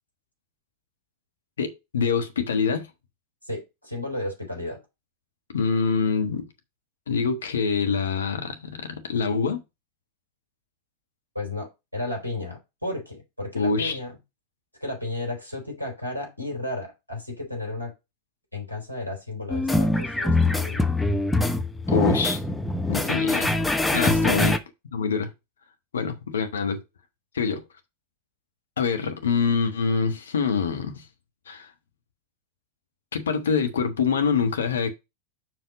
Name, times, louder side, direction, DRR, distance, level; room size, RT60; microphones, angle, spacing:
voice 1, 1.6-2.9 5.5-6.4 7.1-9.6 13.5-14.0 21.9-22.4 22.9-23.5 23.9-24.5 24.9-25.3 25.9-26.8 27.3-27.6 28.8-31.0 31.5-31.7 33.1-34.9, left 5 dB, 65° left, 1.4 m, -25 dB
voice 2, 3.4-4.8 11.3-14.1 14.8-17.9 18.5-20.9 24.3-24.5, left 2 dB, 90° left, 3.4 m, -33 dB
sound 1, 19.5-24.6, left 2 dB, 5° left, 0.8 m, -23 dB
5.8 x 4.9 x 5.1 m
figure-of-eight pair, 90°, 0 cm